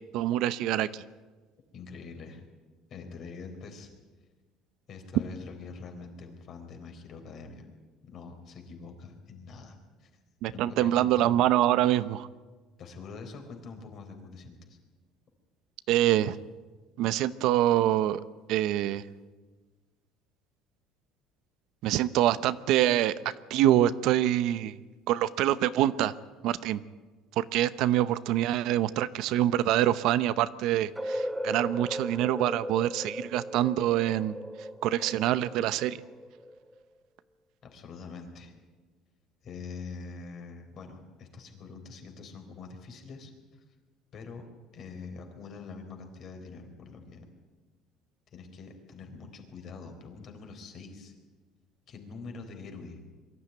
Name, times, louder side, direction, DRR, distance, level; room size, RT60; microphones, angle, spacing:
voice 1, 0.1-1.0 10.4-12.3 15.9-16.4 17.0-18.2 18.5-19.0 21.8-24.7 25.1-26.1 26.4-26.8 27.4-34.3 34.8-36.0, right 13 dB, 65° right, 15 dB, 0.7 m, -25 dB
voice 2, 1.7-2.4 2.9-3.9 4.9-7.7 8.0-10.1 10.5-11.3 12.8-14.8 37.6-38.5 39.4-43.6 44.1-44.5 44.7-47.3 48.3-51.1 51.9-53.0, left 4 dB, 45° left, 4 dB, 4.0 m, -44 dB
sound 1, 31.0-36.8, equal, 5° right, 1.1 m, -37 dB
23.0 x 13.5 x 9.4 m, 1.3 s
cardioid pair, 145°, 0 cm